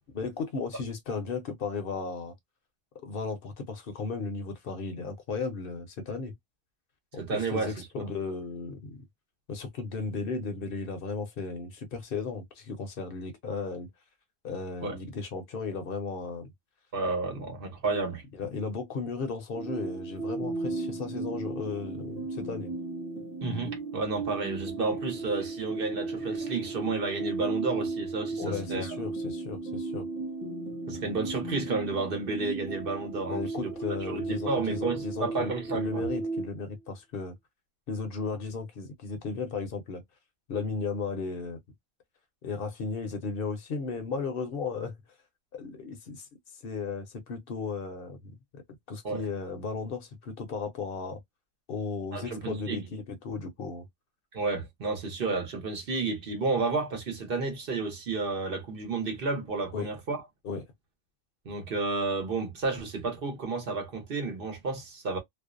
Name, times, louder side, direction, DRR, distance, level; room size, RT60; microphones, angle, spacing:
voice 1, 0.1-2.3 3.0-6.3 7.1-9.0 9.5-13.9 14.4-16.5 18.4-22.7 28.4-30.1 33.3-37.4 37.9-40.0 40.5-41.6 42.4-45.0 45.5-46.3 46.6-48.6 48.9-51.2 51.7-53.9 59.7-59.9 60.4-60.6, left 4 dB, 60° left, 0.8 m, -35 dB
voice 2, 7.2-8.1 14.8-15.0 16.9-18.2 23.4-28.9 30.9-33.7 34.1-36.0 49.0-49.2 52.1-52.8 54.3-60.2 61.4-65.2, right 3 dB, 60° right, 1.0 m, -31 dB
sound 1, 19.5-36.5, right 3 dB, 10° right, 0.6 m, -35 dB
2.5 x 2.0 x 2.4 m
omnidirectional pair, 1.1 m